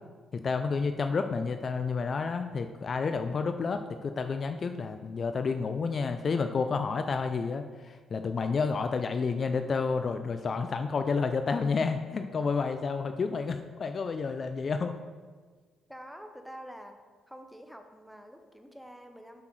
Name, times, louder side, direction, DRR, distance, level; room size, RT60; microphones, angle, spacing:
voice 1, 0.3-15.0, left 4 dB, 45° left, 8 dB, 0.4 m, -30 dB
voice 2, 9.4-9.8 15.9-17.0 17.3-19.4, equal, ahead, 5 dB, 0.8 m, -47 dB
7.7 x 5.8 x 4.6 m, 1.5 s
cardioid pair, 90°, 0 cm